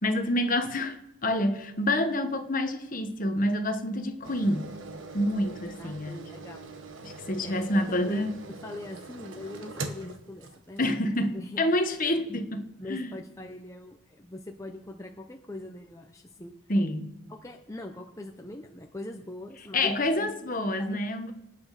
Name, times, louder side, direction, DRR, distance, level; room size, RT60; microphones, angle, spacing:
voice 1, 0.0-1.0 1.2-4.7 5.1-6.2 7.0-8.3 10.8-12.6 12.9-13.2 16.7-17.1 19.7-21.3, left 1 dB, 40° left, 7 dB, 1.3 m, -27 dB
sound 1, 4.2-11.3 11.8-11.9, right 3 dB, 70° right, 1.3 m, -42 dB
voice 2, 5.8-6.6 7.1-8.3 8.6-11.0 11.3-11.6 12.3-12.4 12.8-16.5 17.3-20.3 20.7-21.3, left 1 dB, 15° left, 2 dB, 0.8 m, -42 dB
25.0 x 8.8 x 5.0 m, 0.89 s
head